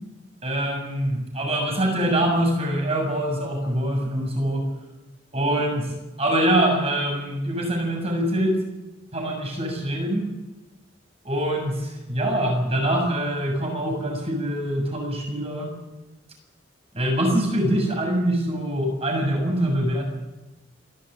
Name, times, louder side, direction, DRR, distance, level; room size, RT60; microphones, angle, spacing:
voice 1, 0.4-4.7 5.3-8.6 9.1-10.3 11.2-15.7 16.9-20.0, right 1 dB, 35° right, 1 dB, 7.2 m, -24 dB
28.0 x 12.5 x 9.1 m, 1.1 s
head